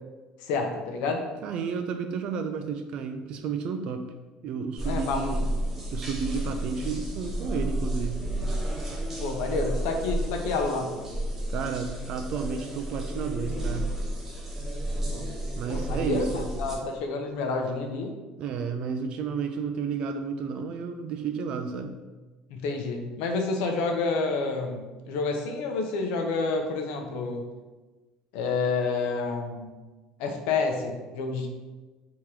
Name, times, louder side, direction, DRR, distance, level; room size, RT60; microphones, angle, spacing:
voice 1, 0.4-1.2 4.8-5.4 9.2-10.9 15.1-15.3 15.7-18.1 22.5-27.5 28.3-29.7 30.2-31.5, left 3 dB, 80° left, 3 dB, 0.7 m, -29 dB
voice 2, 1.4-4.1 4.4-5.5 5.9-8.2 11.5-13.9 15.6-16.5 18.4-21.9, right 6 dB, 45° right, 7 dB, 0.3 m, -32 dB
sound 1, 4.8-16.8, right 1 dB, 15° right, 0.7 m, -32 dB
3.6 x 3.0 x 4.7 m, 1.2 s
cardioid pair, 175°, 2 cm